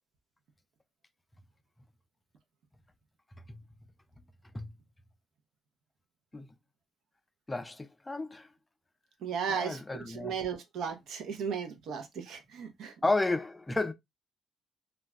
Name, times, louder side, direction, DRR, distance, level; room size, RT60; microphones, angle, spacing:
voice 1, 7.5-8.5 9.5-10.3 13.0-13.9, left 2 dB, 15° left, 0.4 m, -32 dB
voice 2, 9.2-12.9, right 6 dB, 80° right, 0.6 m, -36 dB
2.3 x 2.1 x 3.4 m
cardioid pair, 90°, 0 cm